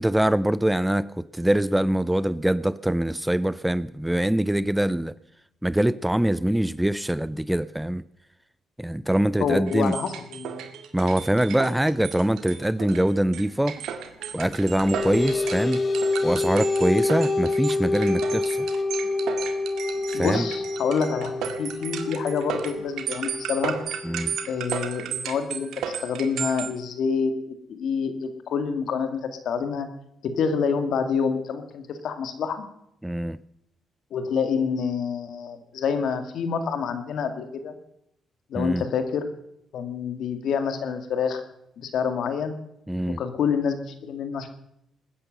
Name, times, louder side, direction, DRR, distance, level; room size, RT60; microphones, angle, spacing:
voice 1, 0.0-5.1 5.6-8.0 8.8-9.9 10.9-13.8 14.3-15.9 16.2-18.7 20.1-20.5 24.0-24.4 33.0-33.4 38.6-38.8 42.9-43.2, right 1 dB, 5° right, 18 dB, 0.5 m, -23 dB
voice 2, 9.4-10.7 20.1-23.7 24.5-29.2 29.4-29.9 30.2-32.7 34.1-37.7 38.5-39.3 39.7-41.4 41.8-42.6 43.2-44.5, left 6 dB, 70° left, 8 dB, 2.2 m, -27 dB
sound 1, 9.7-26.7, right 8 dB, 80° right, 1.8 m, -34 dB
sound 2, 14.4-25.4, left 3 dB, 35° left, 1.2 m, -28 dB
20.5 x 10.0 x 6.8 m, 0.77 s
cardioid pair, 90°, 0 cm